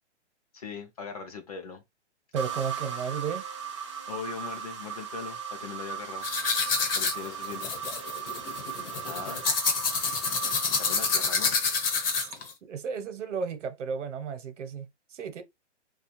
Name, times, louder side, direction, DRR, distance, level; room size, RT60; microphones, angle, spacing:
voice 1, 0.5-1.8 4.1-6.3 6.9-7.8 9.0-9.5 10.7-11.6, left 5 dB, 35° left, 0.5 m, -40 dB
voice 2, 2.3-3.4 12.6-15.4, right 6 dB, 90° right, 0.8 m, -33 dB
sound 1, 2.4-12.3, right 8 dB, 30° right, 0.4 m, -38 dB
sound 2, 6.2-12.5, left 5 dB, 50° left, 1.0 m, -28 dB
2.3 x 2.3 x 2.9 m
hypercardioid pair, 160°, 35 cm